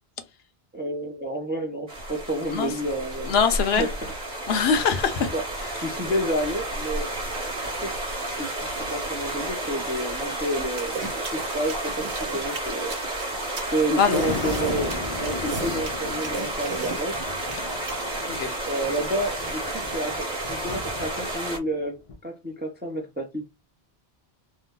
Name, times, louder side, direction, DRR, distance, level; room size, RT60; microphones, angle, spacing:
voice 1, 0.7-3.4 3.7-3.9 5.3-5.4 5.8-7.1 7.6-7.9 8.4-12.1 12.3-13.0 13.7-17.2 18.6-19.6 19.9-23.5, right 1 dB, 15° right, 0.4 m, -30 dB
sound 1, 1.9-21.6, right 1 dB, 40° right, 1.1 m, -31 dB
voice 2, 3.3-3.9 4.5-5.3 14.0-14.2 18.3-18.5, left 6 dB, 75° left, 0.9 m, -22 dB
sound 2, 10.8-17.9, right 4 dB, 65° right, 1.0 m, -34 dB
Thunder, 13.4-21.7 22.1-22.2, left 3 dB, 45° left, 0.5 m, -36 dB
2.7 x 2.1 x 3.7 m
omnidirectional pair, 1.1 m